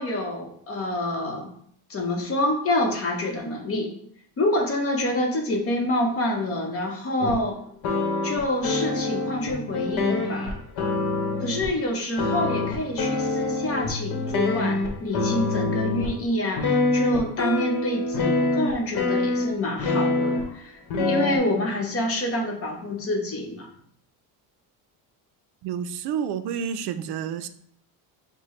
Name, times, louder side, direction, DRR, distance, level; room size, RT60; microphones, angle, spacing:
voice 1, 0.0-1.5 1.9-3.9 4.4-7.6 8.2-10.6 11.4-20.8 21.0-23.7, left 1 dB, 30° left, 1 dB, 0.9 m, -27 dB
sound 1, 7.2-7.4 7.8-11.7 12.2-16.2 16.6-20.5 20.9-21.4, left 3 dB, 60° left, 1.0 m, -25 dB
voice 2, 25.6-27.5, right 8 dB, 65° right, 11 dB, 0.5 m, -29 dB
6.6 x 2.2 x 3.1 m, 0.65 s
cardioid pair, 130°, 43 cm